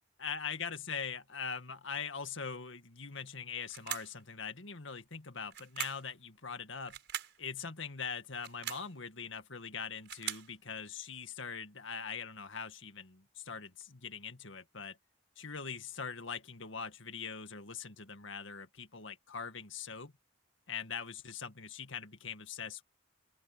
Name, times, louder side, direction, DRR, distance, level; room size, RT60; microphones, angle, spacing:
voice 1, 0.2-7.0 7.4-15.0 15.4-20.1 20.7-22.8, left 6 dB, 75° left, 2.0 m, -42 dB
sound 1, 3.7-4.2 5.5-6.1 6.9-7.4 8.3-8.9 9.8-10.5, right 10 dB, 60° right, 5.8 m, -41 dB
open air
head